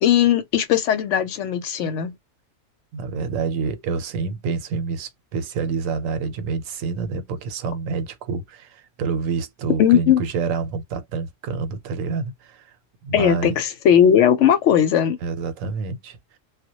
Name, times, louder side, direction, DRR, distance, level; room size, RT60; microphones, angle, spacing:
voice 1, 0.0-2.1 9.8-10.2 13.1-15.2, left 9 dB, 70° left, 0.8 m, -18 dB
voice 2, 2.9-12.7 13.0-13.5 15.2-16.4, right 5 dB, 90° right, 1.0 m, -28 dB
2.2 x 2.1 x 2.8 m
omnidirectional pair, 1.4 m